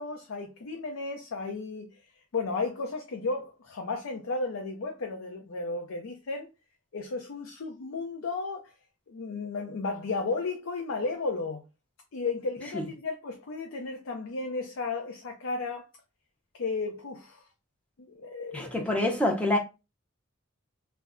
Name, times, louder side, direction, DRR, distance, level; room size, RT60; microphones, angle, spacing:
voice 1, 0.0-1.9 2.3-6.5 6.9-8.6 9.1-11.6 12.1-15.9 16.5-17.4 18.0-18.9, left 3 dB, 80° left, 0.5 m, -34 dB
voice 2, 18.5-19.6, left 1 dB, 5° left, 0.6 m, -26 dB
2.3 x 2.1 x 3.6 m
head